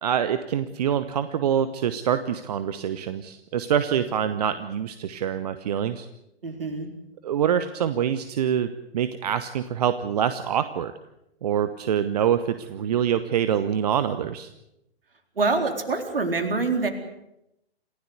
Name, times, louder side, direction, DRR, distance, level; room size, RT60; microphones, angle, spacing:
voice 1, 0.0-6.1 7.2-10.9 11.4-14.5, right 9 dB, 40° right, 12 dB, 1.1 m, -25 dB
voice 2, 6.4-6.9 15.4-16.9, right 3 dB, 60° right, 6 dB, 4.1 m, -25 dB
27.5 x 16.0 x 8.1 m, 0.84 s
figure-of-eight pair, 125°, 32 cm